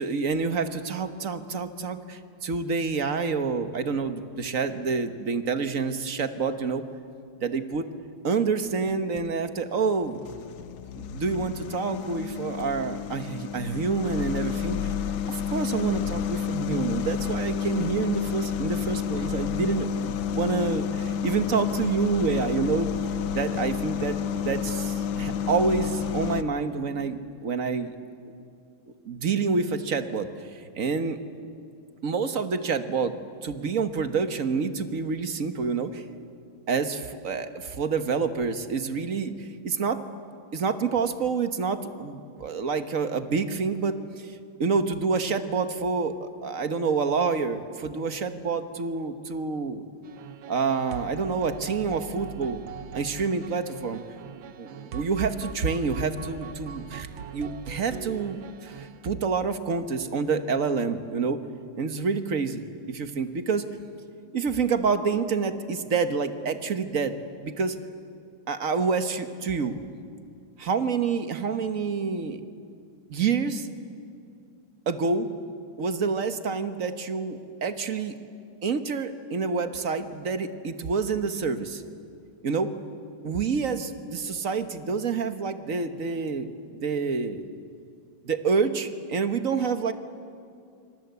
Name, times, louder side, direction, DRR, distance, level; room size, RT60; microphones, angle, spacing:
voice 1, 0.0-6.8 7.4-7.9 8.2-10.3 11.0-14.9 15.3-22.9 23.3-28.0 29.0-31.2 32.0-33.1 33.4-36.0 36.7-40.0 40.5-49.8 50.5-52.6 52.9-54.0 54.6-57.1 57.3-61.4 61.8-63.7 64.3-67.2 67.4-67.8 68.5-69.8 70.6-72.4 73.1-73.7 74.9-75.3 75.8-78.2 78.6-81.8 82.4-82.7 83.2-87.4 88.2-89.9, right 5 dB, 45° right, 9 dB, 1.5 m, -28 dB
sound 1, 8.6-9.3 9.8-26.4, left 8 dB, 85° left, 1.7 m, -30 dB
sound 2, 50.0-59.2, right 8 dB, 80° right, 1.6 m, -41 dB
26.5 x 25.5 x 8.2 m, 2.4 s
omnidirectional pair, 2.1 m